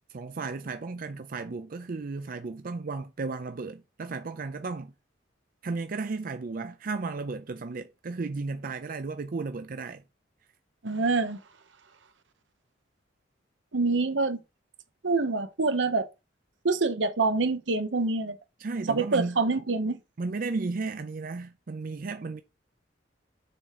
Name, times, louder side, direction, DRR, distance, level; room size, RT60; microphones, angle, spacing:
voice 1, 0.1-4.9 5.6-10.0 18.6-19.4 20.2-22.4, right 3 dB, 50° right, 0.5 m, -34 dB
voice 2, 10.8-11.4 13.7-14.4 15.0-16.1 16.6-18.4 18.9-20.0, right 3 dB, 80° right, 0.9 m, -26 dB
7.1 x 3.7 x 4.9 m
head